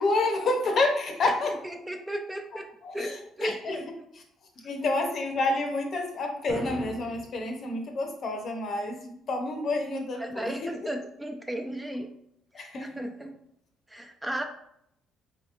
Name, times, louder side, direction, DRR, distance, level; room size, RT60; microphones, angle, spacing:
voice 1, 0.0-1.5 2.8-3.8 4.6-10.7 12.5-12.9, left 2 dB, 50° left, 3 dB, 0.7 m, -29 dB
voice 2, 1.5-2.7 2.9-3.9 4.6-4.7 10.2-12.1 12.6-13.4 13.9-14.4, right 1 dB, 10° right, 4 dB, 0.3 m, -35 dB
sound 1, 6.5-7.5, right 3 dB, 55° right, 0.6 m, -39 dB
3.8 x 2.9 x 2.4 m, 0.74 s
cardioid pair, 100°, 0 cm